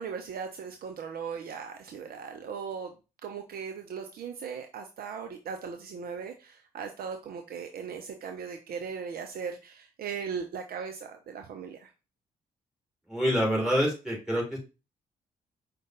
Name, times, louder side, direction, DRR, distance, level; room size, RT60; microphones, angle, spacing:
voice 1, 0.0-2.9 3.2-11.9, right 6 dB, 55° right, 5 dB, 0.5 m, -38 dB
voice 2, 13.1-14.6, equal, 5° right, -2 dB, 2.6 m, -26 dB
5.0 x 2.2 x 3.7 m, 0.30 s
hypercardioid pair, 40°, 19 cm